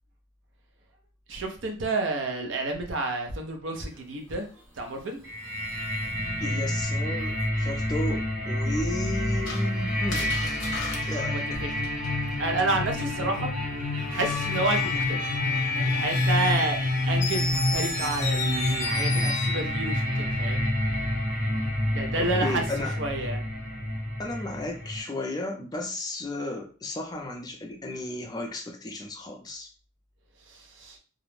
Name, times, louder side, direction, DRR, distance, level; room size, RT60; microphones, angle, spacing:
voice 1, 1.3-4.5 4.8-5.2 11.3-11.7 12.4-13.5 14.1-15.2 15.8-20.6 21.9-22.6 23.0-23.4 30.5-31.0, right 2 dB, 70° right, 4 dB, 0.6 m, -30 dB
sound 1, 3.7-7.5, right 1 dB, 10° right, 0.9 m, -44 dB
sound 2, 5.2-25.0, left 1 dB, 90° right, 1.3 m, -28 dB
voice 2, 6.4-10.5 11.0-11.6 22.2-23.0 24.2-29.7, left 2 dB, 20° left, 2 dB, 0.4 m, -34 dB
Screech, 9.5-12.3 14.0-19.7, left 4 dB, 65° left, 0.6 m, -35 dB
2.4 x 2.0 x 3.1 m, 0.37 s
head